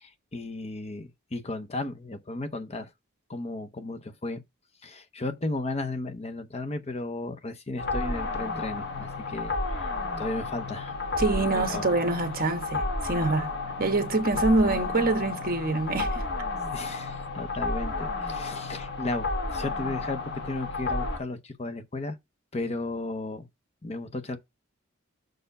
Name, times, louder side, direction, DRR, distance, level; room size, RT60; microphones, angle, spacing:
voice 1, 0.0-2.9 3.3-4.4 4.8-9.9 10.2-11.1 11.5-11.9 16.7-22.2 22.5-23.5 23.8-24.4, left 2 dB, 30° left, 0.8 m, -34 dB
sound 1, 7.8-21.2, left 3 dB, 55° left, 1.4 m, -32 dB
voice 2, 11.2-13.5 13.8-16.3, right 2 dB, 45° right, 1.2 m, -25 dB
6.5 x 4.4 x 5.2 m
head